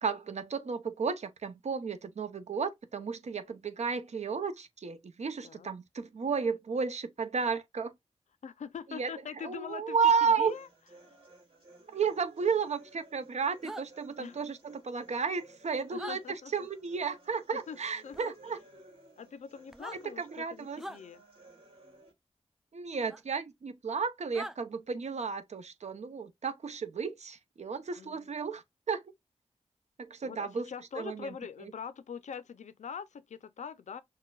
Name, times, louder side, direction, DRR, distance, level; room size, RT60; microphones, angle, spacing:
voice 1, 0.0-7.9 8.9-9.1 9.4-10.5 11.9-18.6 19.9-20.8 22.7-29.0 30.0-30.7 30.9-31.3 31.6-31.7, right 5 dB, 70° right, 0.7 m, -33 dB
voice 2, 8.4-10.7 14.2-14.4 15.9-16.7 17.7-17.8 18.0-18.6 19.2-21.2 28.0-28.3 30.2-34.0, left 7 dB, 85° left, 0.5 m, -43 dB
sound 1, 10.1-22.1, right 2 dB, 50° right, 2.2 m, -58 dB
sound 2, 13.6-13.9 16.0-16.2 18.1-18.3 19.7-20.0 20.8-21.0 23.1-23.2 24.3-24.6, right 1 dB, 5° right, 0.4 m, -42 dB
6.4 x 2.2 x 2.3 m
wide cardioid pair, 75°, 12 cm